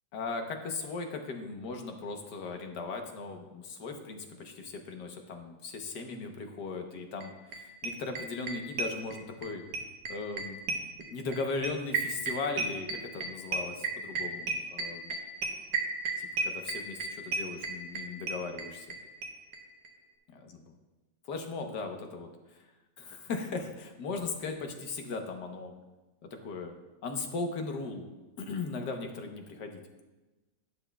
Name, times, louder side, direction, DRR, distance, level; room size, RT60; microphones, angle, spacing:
voice 1, 0.1-9.6 10.1-10.6 11.1-15.2 16.2-18.9 20.3-20.5 21.3-22.3 22.5-22.7 23.0-25.7 26.4-26.7 27.0-28.1 28.4-29.8, left 3 dB, 70° left, 4 dB, 1.5 m, -38 dB
sound 1, 7.2-7.3 7.5-7.6 7.8-9.5 9.7-19.0 19.2-19.3 19.5-19.6 19.8-19.9, right 4 dB, 70° right, 1.6 m, -32 dB
12.0 x 9.9 x 2.3 m, 1.1 s
omnidirectional pair, 1.9 m